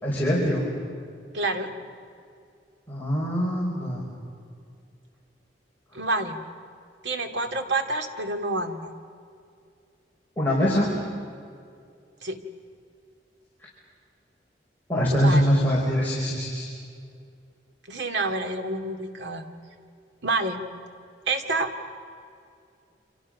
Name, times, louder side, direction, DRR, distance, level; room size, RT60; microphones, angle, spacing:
voice 1, 0.0-0.6 2.9-4.0 10.4-11.0 14.9-16.7, equal, 10° left, -6 dB, 5.0 m, -23 dB
voice 2, 1.3-1.7 5.9-6.4 7.0-8.9 12.2-12.4 15.1-15.5 17.9-19.4 20.2-20.6 21.3-21.7, right 2 dB, 80° right, 5 dB, 2.3 m, -28 dB
29.0 x 27.0 x 6.5 m, 2.3 s
head